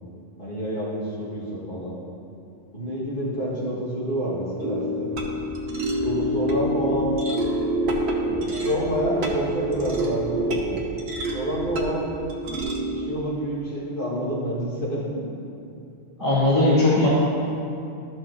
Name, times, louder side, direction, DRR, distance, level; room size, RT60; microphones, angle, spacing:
voice 1, 0.4-2.0 2.7-5.1 6.0-7.1 8.2-10.6 11.3-12.1 12.9-15.2 16.2-16.3, equal, 45° left, -10 dB, 2.4 m, -28 dB
sound 1, 4.6-13.1, right 1 dB, 60° right, 1.1 m, -27 dB
Bass drum, 5.1-5.6 5.9-6.5 6.9-7.5 7.8-8.4 8.7-9.4 9.7-10.3 10.6-11.2 11.6-12.2 12.5-12.6, left 1 dB, 45° right, 1.4 m, -41 dB
voice 2, 16.2-17.1, left 2 dB, 15° left, -9 dB, 1.6 m, -18 dB
12.5 x 6.1 x 3.0 m, 2.6 s
omnidirectional pair, 1.2 m